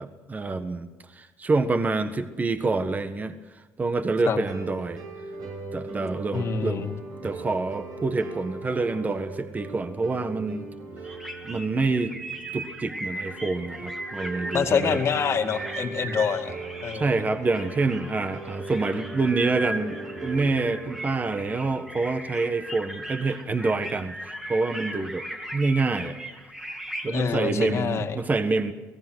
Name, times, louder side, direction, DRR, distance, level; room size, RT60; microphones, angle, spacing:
voice 1, 0.0-3.4 3.8-5.0 5.7-6.9 7.2-10.7 11.4-12.1 12.5-15.0 16.9-25.2 25.5-26.2 27.0-28.7, right 3 dB, 25° right, 9 dB, 1.5 m, -27 dB
sound 1, 4.4-22.4, right 3 dB, 65° right, 7.1 m, -40 dB
voice 2, 6.3-6.9 14.5-16.6 16.8-17.1 27.1-28.2, left 6 dB, 45° left, 5 dB, 2.2 m, -26 dB
sound 2, 11.0-27.2, right 1 dB, 5° right, 2.6 m, -38 dB
28.5 x 18.5 x 6.4 m, 1.2 s
supercardioid pair, 90°, 6 cm